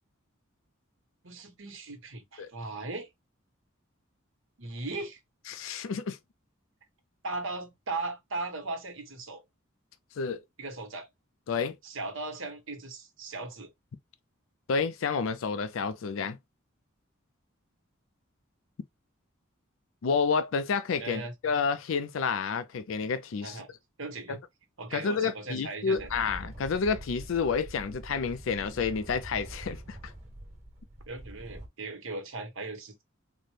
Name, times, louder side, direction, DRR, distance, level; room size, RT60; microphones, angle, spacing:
voice 1, 1.2-3.1 4.6-5.2 7.2-9.4 10.6-11.1 11.8-13.7 21.0-21.3 23.4-23.7 24.0-24.4 24.8-26.1 31.1-33.0, right 3 dB, 80° right, 1.2 m, -38 dB
voice 2, 5.5-6.2 10.2-10.4 11.5-11.8 14.7-16.4 20.0-23.6 24.3-24.4 24.9-30.1, left 5 dB, 75° left, 0.4 m, -30 dB
sound 1, 26.0-31.7, right 1 dB, 35° right, 1.3 m, -44 dB
4.1 x 2.1 x 3.1 m
head